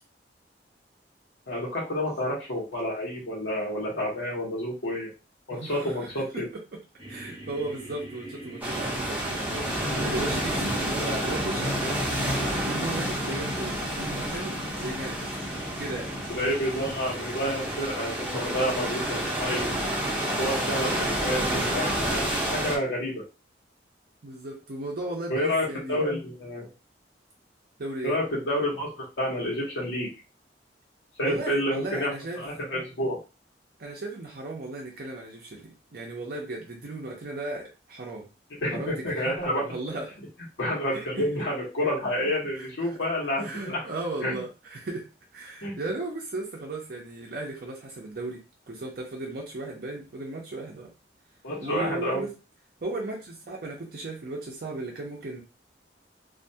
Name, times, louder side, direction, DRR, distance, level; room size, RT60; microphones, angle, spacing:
voice 1, 1.5-5.1 5.5-6.4 16.4-19.7 20.4-23.2 25.3-26.7 28.0-30.1 31.2-32.1 32.4-33.2 38.6-39.6 40.6-43.8 44.2-44.4 45.6-45.8 51.4-52.2, left 1 dB, 90° left, -5 dB, 1.0 m, -29 dB
voice 2, 5.5-6.8 7.1-12.0 12.4-15.2 15.8-16.1 20.6-20.9 24.2-26.0 27.8-28.2 31.2-32.4 33.8-38.3 38.7-39.3 39.6-40.2 40.9-41.4 42.6-42.7 43.4-45.0 45.3-50.9 51.6-52.3 52.8-55.4, right 2 dB, 55° right, -2 dB, 0.6 m, -36 dB
sound 1, 7.0-18.6, right 1 dB, 25° right, 0.9 m, -44 dB
sound 2, 8.6-22.8, right 1 dB, 10° right, 0.6 m, -30 dB
sound 3, 9.5-17.1, left 2 dB, 30° left, 0.6 m, -36 dB
2.5 x 2.2 x 2.7 m, 0.30 s
head